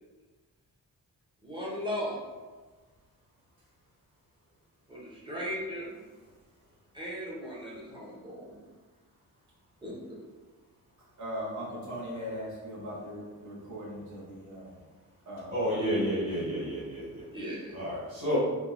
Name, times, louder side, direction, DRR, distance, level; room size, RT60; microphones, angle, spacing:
voice 1, 1.4-2.2 4.9-6.0 6.9-8.5 9.8-10.2 17.3-17.7, equal, 15° right, -7 dB, 0.6 m, -37 dB
voice 2, 11.2-14.8 15.3-16.0 16.5-16.8, equal, 50° right, -5 dB, 0.9 m, -40 dB
voice 3, 15.5-17.3 17.7-18.4, equal, 30° right, -13 dB, 1.3 m, -30 dB
3.3 x 2.0 x 2.4 m, 1.3 s
wide cardioid pair, 170°, 36 cm